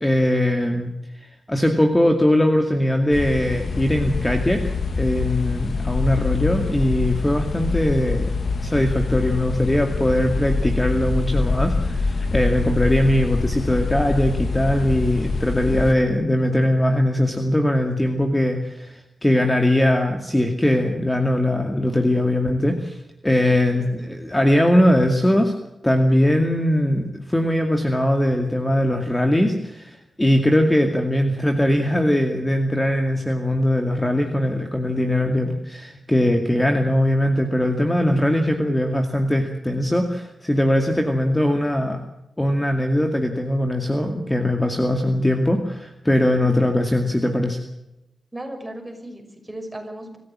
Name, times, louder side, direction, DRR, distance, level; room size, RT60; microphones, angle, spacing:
voice 1, 0.0-0.9 1.2-8.3 8.6-25.6 25.8-42.0 42.4-47.6, left 1 dB, 10° left, 4 dB, 2.3 m, -20 dB
sound 1, 3.1-15.9, left 4 dB, 65° left, 1.8 m, -25 dB
voice 2, 23.5-24.0 48.3-50.2, right 1 dB, 10° right, 4 dB, 6.1 m, -36 dB
26.0 x 15.0 x 7.5 m, 0.88 s
wide cardioid pair, 105°, 0 cm